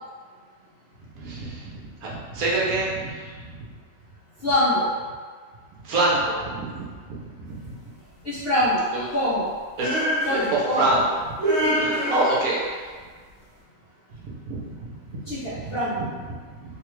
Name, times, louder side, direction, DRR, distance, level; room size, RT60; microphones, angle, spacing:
voice 1, 1.2-3.7 5.8-6.8 7.2-7.7 8.9-9.0 9.8-10.0 10.5-12.7 14.5-15.0 15.4-16.0 16.5-16.6, right 2 dB, 65° right, -5 dB, 1.1 m, -27 dB
voice 2, 4.4-4.9 8.2-8.8 9.1-9.5 10.3-10.9 15.3-16.0, left 1 dB, 55° left, -11 dB, 0.7 m, -23 dB
sound 1, 9.8-10.8 11.4-12.8, equal, 50° right, 1.4 m, -25 dB
3.2 x 2.3 x 3.1 m, 1.6 s
omnidirectional pair, 1.7 m